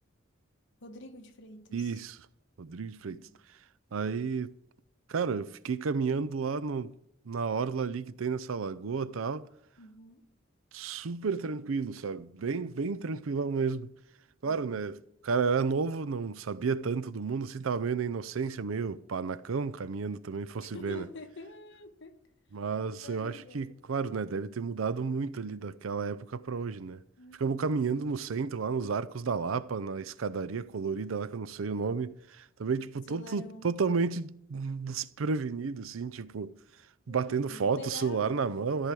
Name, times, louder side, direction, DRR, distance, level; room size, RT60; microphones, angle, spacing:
voice 1, 0.8-2.0 3.1-3.4 9.8-10.2 20.6-22.1 23.0-23.7 27.2-27.7 33.1-33.8 37.1-38.7, left 2 dB, 65° left, 1.2 m, -47 dB
voice 2, 1.7-2.2 2.6-3.2 3.9-4.5 5.1-6.9 7.3-9.5 10.7-13.9 14.4-21.1 22.5-27.0 27.3-36.5 37.1-38.9, right 5 dB, 90° right, 0.5 m, -32 dB
13.5 x 4.9 x 7.5 m
head